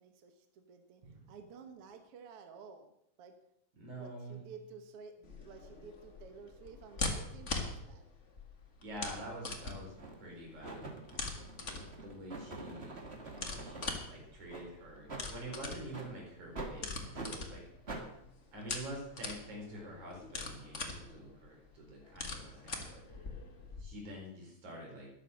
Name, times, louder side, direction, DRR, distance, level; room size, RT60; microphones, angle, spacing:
voice 1, 0.0-2.9 3.2-3.4 4.0-8.1, right 5 dB, 60° right, 6 dB, 1.9 m, -53 dB
voice 2, 1.0-1.3 3.8-4.4 8.8-10.9 11.2-13.0 13.6-17.6 18.5-23.0 23.8-25.1, right 1 dB, 80° right, -1 dB, 5.8 m, -47 dB
sound 1, 5.2-23.8, left 3 dB, 30° left, 1.6 m, -43 dB
sound 2, 9.1-9.3 10.0-10.3 10.6-14.0 14.5-14.6 15.1-15.3 15.9-16.1 16.5-16.7 17.1-17.3 17.9-18.0, right 3 dB, 25° right, 2.1 m, -45 dB
13.0 x 11.5 x 6.3 m, 0.77 s
omnidirectional pair, 3.4 m